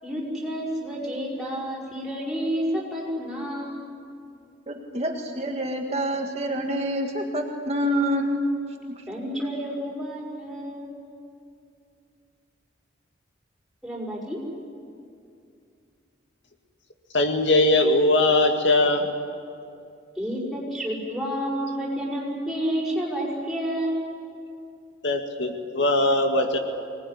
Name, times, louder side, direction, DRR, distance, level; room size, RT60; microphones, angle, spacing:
voice 1, 0.0-3.9 9.1-10.9 13.8-14.4 20.2-24.0, equal, ahead, -5 dB, 5.9 m, -30 dB
voice 2, 4.7-8.5 8.9-9.0, equal, 35° right, 1 dB, 1.8 m, -27 dB
voice 3, 17.1-19.1 25.0-26.6, left 2 dB, 70° left, 4 dB, 2.1 m, -20 dB
25.0 x 20.0 x 10.0 m, 2.5 s
head